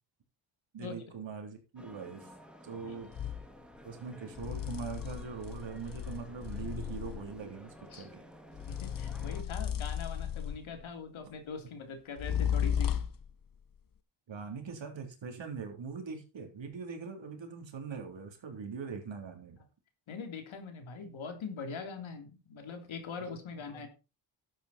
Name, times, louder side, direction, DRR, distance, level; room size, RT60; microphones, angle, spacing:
voice 1, 0.7-2.3 2.6-3.1 3.8-8.2 14.3-19.6 23.7-23.9, right 5 dB, 65° right, 4 dB, 3.6 m, -42 dB
sound 1, 1.8-9.4, equal, ahead, 2.3 m, -53 dB
sound 2, 3.1-3.5 4.4-7.3 8.6-10.8 12.2-13.3, left 9 dB, 45° left, 0.8 m, -34 dB
voice 2, 8.7-12.9 20.1-23.9, left 5 dB, 75° left, 6 dB, 3.3 m, -42 dB
12.0 x 8.4 x 4.4 m, 0.31 s
cardioid pair, 95°, 48 cm